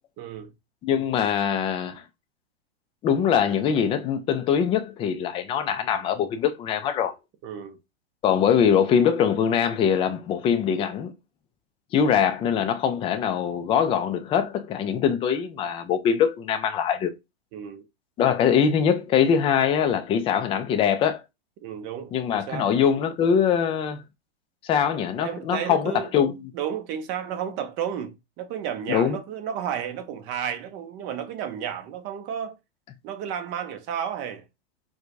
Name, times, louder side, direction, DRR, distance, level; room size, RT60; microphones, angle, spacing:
voice 1, 0.2-0.5 7.4-7.8 17.5-17.8 21.6-22.7 25.2-26.1 26.5-32.5 33.0-34.4, right 8 dB, 40° right, 0.8 m, -32 dB
voice 2, 0.8-2.0 3.0-7.1 8.2-11.1 11.9-17.1 18.2-21.2 22.1-24.0 24.6-26.4 28.9-29.2, left 8 dB, 20° left, 0.4 m, -23 dB
4.4 x 2.2 x 2.5 m
hypercardioid pair, 120°, 31 cm